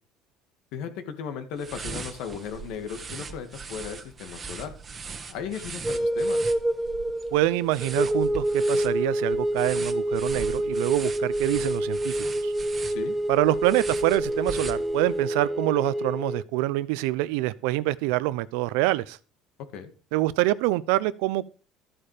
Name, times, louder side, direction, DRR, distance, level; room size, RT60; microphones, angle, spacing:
voice 1, 0.7-4.7 5.3-6.4 12.9-13.1 19.7-19.9, left 7 dB, 70° left, 2.4 m, -36 dB
sound 1, 1.6-15.3, right 5 dB, 25° right, 1.4 m, -40 dB
sound 2, 5.8-16.4, right 1 dB, 5° right, 0.5 m, -27 dB
voice 2, 7.3-12.5 13.3-19.2 20.1-21.4, right 17 dB, 90° right, 0.7 m, -26 dB
13.5 x 8.9 x 5.1 m
cardioid pair, 135°, 0 cm